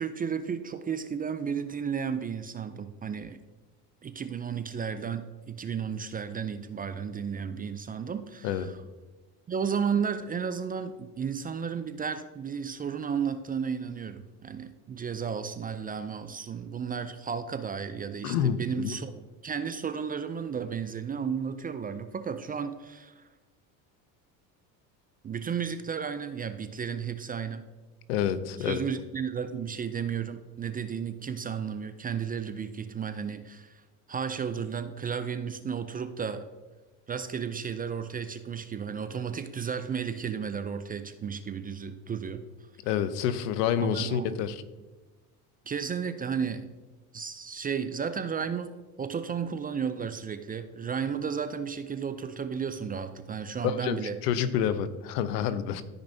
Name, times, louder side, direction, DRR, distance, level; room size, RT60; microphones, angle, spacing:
voice 1, 0.0-3.4 4.0-8.8 9.5-19.1 19.4-23.3 25.2-27.7 28.6-33.8 34.1-36.5 37.1-42.4 43.8-44.3 45.7-46.7 47.1-54.4, right 7 dB, 20° right, 10 dB, 0.3 m, -33 dB
voice 2, 18.2-18.9 28.1-28.8 42.8-44.6 53.6-55.8, left 9 dB, 80° left, 13 dB, 0.7 m, -28 dB
13.5 x 5.3 x 2.7 m, 1.2 s
hypercardioid pair, 80°, 47 cm